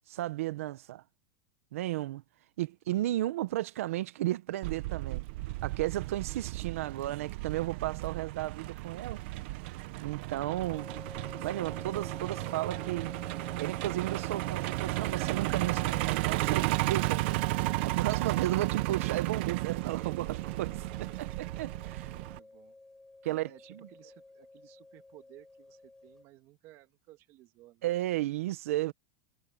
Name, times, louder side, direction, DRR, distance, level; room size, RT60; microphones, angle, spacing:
voice 1, 0.1-1.0 1.7-2.2 2.6-5.3 5.6-9.2 10.0-10.9 11.4-13.1 13.6-17.4 17.8-22.1 23.2-23.5 27.8-28.9, right 15 dB, 80° right, 1.0 m, -34 dB
Truck, 4.6-22.4, right 20 dB, 50° right, 0.8 m, -33 dB
sound 1, 10.7-26.2, left 2 dB, 5° left, 7.7 m, -51 dB
voice 2, 21.9-22.8 23.2-27.9, right 16 dB, 35° right, 1.9 m, -57 dB
supercardioid pair, 170°, 7 cm